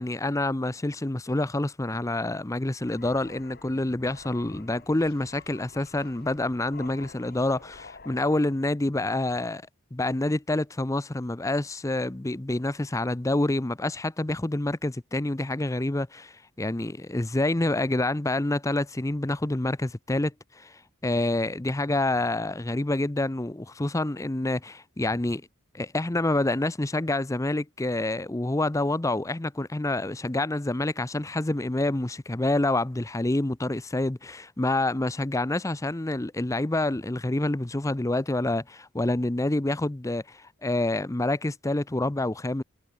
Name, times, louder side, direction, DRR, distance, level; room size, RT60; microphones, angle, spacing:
voice 1, 0.0-9.6 9.9-25.4 25.7-42.6, left 2 dB, 15° left, 0.6 m, -27 dB
sound 1, 2.8-8.9, left 4 dB, 45° left, 2.9 m, -49 dB
head